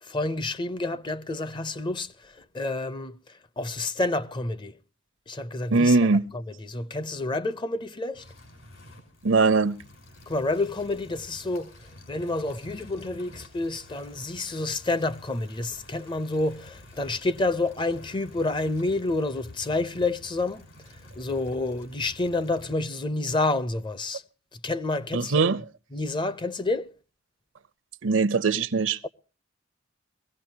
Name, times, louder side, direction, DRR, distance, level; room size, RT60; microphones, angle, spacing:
voice 1, 0.0-3.2 3.6-4.8 5.3-6.0 6.3-8.2 10.3-11.8 12.1-20.7 21.2-24.2 24.5-25.6 25.9-26.9, left 2 dB, 25° left, 0.6 m, -29 dB
voice 2, 5.7-6.2 9.2-9.8 25.1-25.6 28.0-29.0, right 4 dB, 70° right, 0.7 m, -21 dB
sound 1, 8.1-22.7, left 1 dB, 70° left, 5.5 m, -49 dB
22.0 x 16.0 x 2.8 m
head